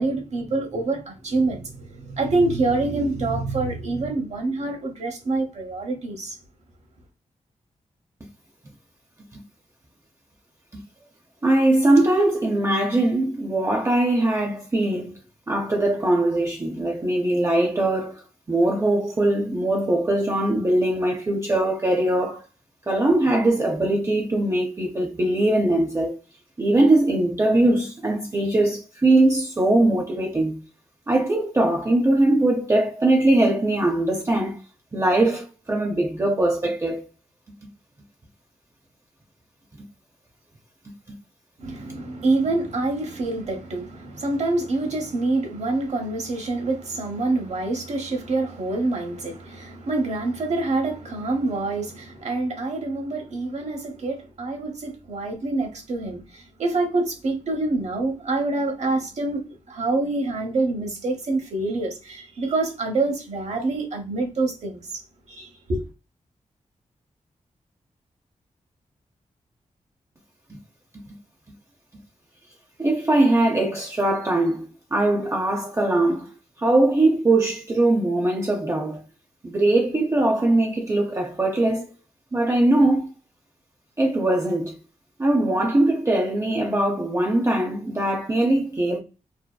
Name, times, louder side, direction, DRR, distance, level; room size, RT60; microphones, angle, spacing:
voice 1, 0.0-6.4 41.6-65.0 65.3-65.8, right 2 dB, 60° right, 0.9 m, -26 dB
voice 2, 11.4-15.1 15.5-18.2 18.5-22.4 22.9-26.2 26.6-30.6 31.1-34.6 34.9-37.0 72.8-76.3 76.6-79.0 79.4-81.9 82.3-83.1 84.0-84.7 85.2-89.0, right 1 dB, 25° right, 0.5 m, -21 dB
2.7 x 2.0 x 2.2 m
cardioid pair, 60°, 13 cm